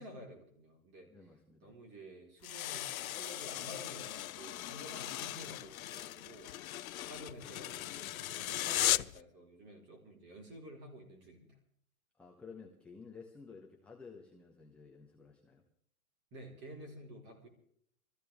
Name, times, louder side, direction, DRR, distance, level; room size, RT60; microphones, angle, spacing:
voice 1, 0.0-1.1 1.6-6.6 7.0-11.6 16.3-17.5, equal, 25° right, 2 dB, 4.2 m, -51 dB
voice 2, 1.1-1.8 12.2-15.6, left 5 dB, 5° left, 0 dB, 0.9 m, -53 dB
sound 1, 2.4-9.2, left 13 dB, 75° left, 0.6 m, -37 dB
23.0 x 14.5 x 3.5 m, 0.64 s
hypercardioid pair, 150°, 42 cm